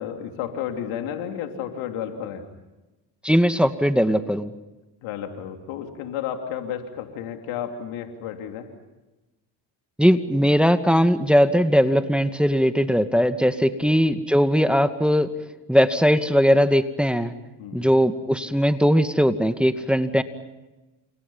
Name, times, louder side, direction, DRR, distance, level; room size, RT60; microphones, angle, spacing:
voice 1, 0.0-2.4 5.0-8.7 17.6-17.9, left 9 dB, 85° left, 5 dB, 3.3 m, -32 dB
voice 2, 3.2-4.5 10.0-15.3 15.7-17.3 17.7-20.2, equal, ahead, 8 dB, 2.3 m, -19 dB
30.0 x 28.0 x 5.7 m, 1.1 s
hypercardioid pair, 45°, 48 cm